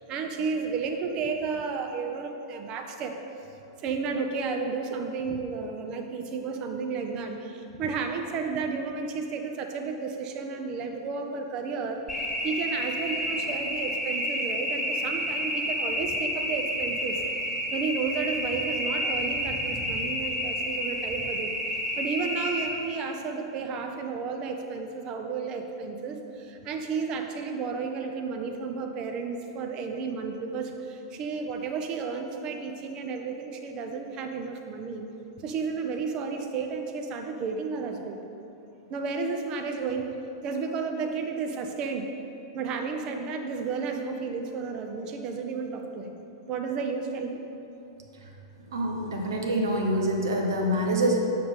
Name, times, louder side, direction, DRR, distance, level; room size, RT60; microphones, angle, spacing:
voice 1, 0.0-3.1 3.8-17.2 17.7-21.5 22.0-35.0 35.4-38.2 38.9-40.1 40.4-42.1 42.5-46.2 46.5-47.4, right 5 dB, 35° right, 4 dB, 0.7 m, -32 dB
sound 1, 12.1-22.7, equal, ahead, 1.4 m, -30 dB
voice 2, 48.7-51.2, right 1 dB, 70° right, 1 dB, 1.1 m, -25 dB
6.8 x 6.6 x 3.7 m, 2.8 s
figure-of-eight pair, 100°, 2 cm